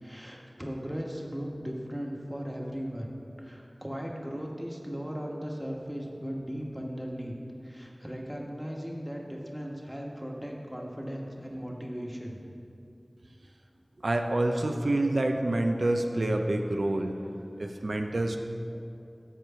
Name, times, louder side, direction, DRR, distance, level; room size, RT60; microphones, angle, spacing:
voice 1, 0.0-3.1 3.4-7.3 7.6-12.4, equal, 5° right, -1 dB, 1.2 m, -37 dB
voice 2, 14.0-17.2 17.6-18.4, right 1 dB, 90° right, 4 dB, 0.5 m, -27 dB
8.0 x 4.7 x 6.7 m, 2.6 s
wide cardioid pair, 45°, 0 cm